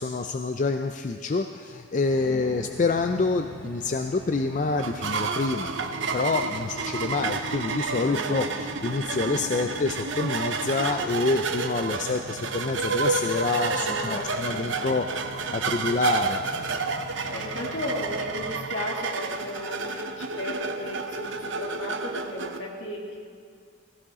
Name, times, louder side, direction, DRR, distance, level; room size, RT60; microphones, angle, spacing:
voice 1, 0.0-5.7 6.1-15.0 15.5-16.4, left 3 dB, 40° left, 6 dB, 0.4 m, -27 dB
sound 1, 2.0-18.6, left 2 dB, 10° left, 2.9 m, -43 dB
voice 2, 2.2-2.6 8.0-8.5 9.4-9.7 13.7-15.4 17.2-23.2, left 1 dB, 65° left, -2 dB, 2.6 m, -36 dB
sound 2, 4.8-22.6, right 4 dB, 65° right, 0.8 m, -30 dB
16.5 x 16.0 x 3.7 m, 2.2 s
head